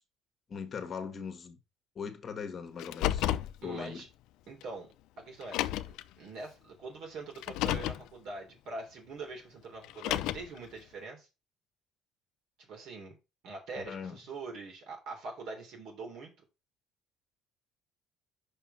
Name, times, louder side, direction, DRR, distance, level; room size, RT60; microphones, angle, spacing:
voice 1, 0.5-1.6 1.9-3.3 3.6-4.0 13.8-14.2, left 6 dB, 40° left, 1.4 m, -40 dB
Car, 2.8-3.5 4.6-4.7 5.4-6.0 7.3-8.0 9.8-10.6, left 14 dB, 75° left, 0.5 m, -31 dB
voice 2, 3.6-4.1 4.5-4.9 5.2-5.6 6.2-11.3 12.6-13.2 13.4-16.3, right 3 dB, 65° right, 3.3 m, -43 dB
5.5 x 5.5 x 5.6 m
cardioid pair, 115°, 0 cm